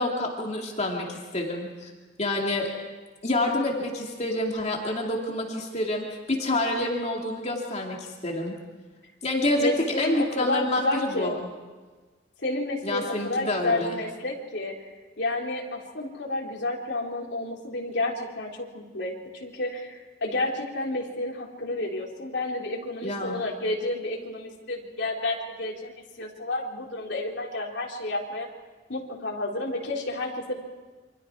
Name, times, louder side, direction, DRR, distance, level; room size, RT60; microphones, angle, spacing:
voice 1, 0.0-1.9 2.2-2.7 3.2-8.5 9.2-9.7 10.0-11.5 12.8-14.0 23.0-23.5, left 1 dB, 40° left, 0 dB, 2.6 m, -28 dB
voice 2, 9.6-11.4 12.4-14.8 15.2-28.5 28.9-30.5, left 2 dB, 65° left, -1 dB, 3.7 m, -30 dB
28.0 x 25.5 x 4.7 m, 1.3 s
head